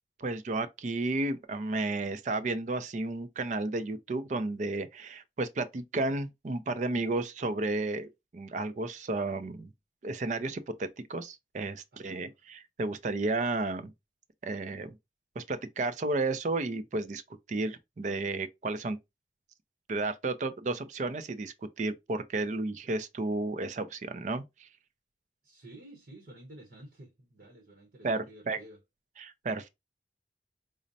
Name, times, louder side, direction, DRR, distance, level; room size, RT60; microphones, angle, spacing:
voice 1, 0.2-9.7 10.0-13.9 14.4-15.0 15.4-17.2 17.5-19.0 19.9-24.7 28.0-28.6 29.2-29.7, right 2 dB, 45° right, 0.4 m, -32 dB
voice 2, 11.9-12.3 25.4-28.8, right 1 dB, 60° right, 0.9 m, -51 dB
5.0 x 2.1 x 2.6 m
head